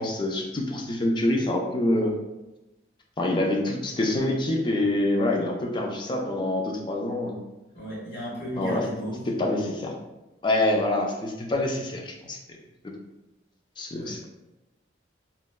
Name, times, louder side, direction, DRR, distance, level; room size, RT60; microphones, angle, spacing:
voice 1, 0.0-2.2 3.2-7.4 8.6-8.9 9.4-9.9 10.4-12.4 13.8-14.2, left 1 dB, 25° left, 1 dB, 0.3 m, -26 dB
voice 2, 7.7-9.2 14.0-14.2, equal, 65° left, -6 dB, 1.1 m, -35 dB
2.9 x 2.1 x 2.2 m, 1.0 s
head